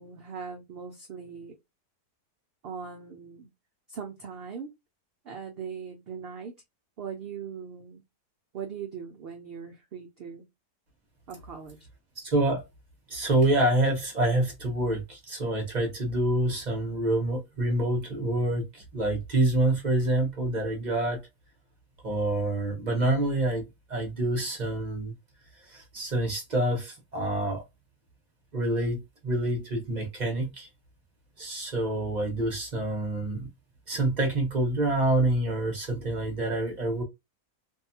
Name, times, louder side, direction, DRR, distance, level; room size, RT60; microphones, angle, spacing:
voice 1, 0.0-1.5 2.6-3.5 3.9-4.7 5.2-6.5 7.0-8.0 8.5-10.4 11.3-11.8, right 6 dB, 90° right, 0.5 m, -40 dB
voice 2, 12.2-12.6 13.1-21.2 22.0-23.6 23.9-25.1 25.7-27.6 28.5-30.7 31.4-33.5 33.9-37.0, right 1 dB, 40° right, 0.7 m, -27 dB
2.7 x 2.2 x 2.7 m
omnidirectional pair, 1.6 m